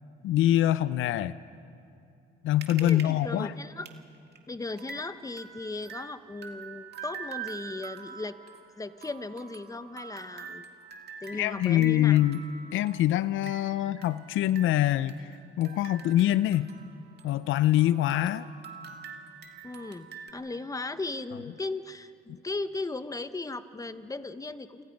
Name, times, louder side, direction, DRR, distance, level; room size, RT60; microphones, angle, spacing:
voice 1, 0.2-1.4 2.4-3.5 11.4-12.4 12.7-15.3 15.6-16.7 17.2-18.5, left 13 dB, 80° left, 16 dB, 0.6 m, -24 dB
sound 1, 2.6-3.1 3.4-3.5 3.8-4.0 4.3-4.4 4.8-17.5 17.7-20.3, right 6 dB, 55° right, 2.1 m, -45 dB
voice 2, 2.8-3.9 4.5-8.4 8.8-10.6 11.2-12.2 19.6-24.8, left 3 dB, 15° left, 12 dB, 1.0 m, -37 dB
28.5 x 23.5 x 5.3 m, 2.6 s
cardioid pair, 90°, 20 cm